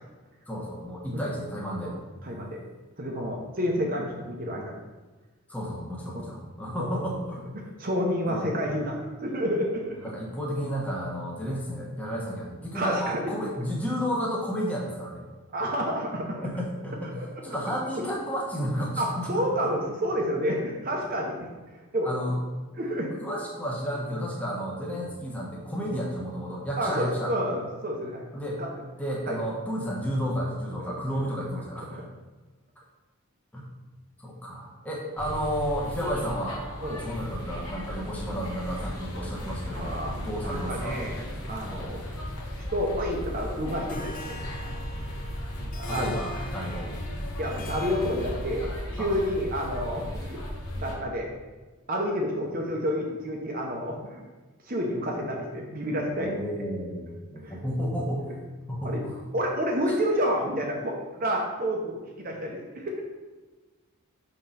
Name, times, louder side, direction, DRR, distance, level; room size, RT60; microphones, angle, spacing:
voice 1, 0.5-2.0 3.1-3.4 5.5-7.4 8.3-8.5 9.9-15.3 16.4-19.7 22.0-22.4 23.2-27.3 28.3-28.6 29.0-32.0 33.5-33.6 34.2-36.6 37.0-41.0 45.8-46.9 49.0-49.1 56.2-58.3 58.7-59.2, equal, 5° left, -4 dB, 1.2 m, -32 dB
voice 2, 2.2-2.6 3.0-4.7 6.1-6.2 6.7-7.0 7.5-10.1 12.7-13.2 15.5-16.5 17.2-17.5 19.0-21.5 21.9-22.1 22.8-23.2 26.8-28.2 28.6-28.7 29.3-29.4 30.9-31.0 31.9-32.0 36.8-37.0 39.7-40.2 40.4-41.2 41.5-42.0 42.7-44.4 45.0-45.2 45.7-46.1 47.4-50.4 50.8-51.3 51.9-54.2 54.6-56.4 57.4-57.5 58.8-59.0 59.3-63.0, equal, 40° right, 0 dB, 0.8 m, -29 dB
sound 1, 35.2-50.9, equal, 80° left, 1.2 m, -36 dB
Harp, 43.9-48.9, left 2 dB, 40° left, 0.5 m, -43 dB
5.6 x 3.8 x 5.7 m, 1.2 s
head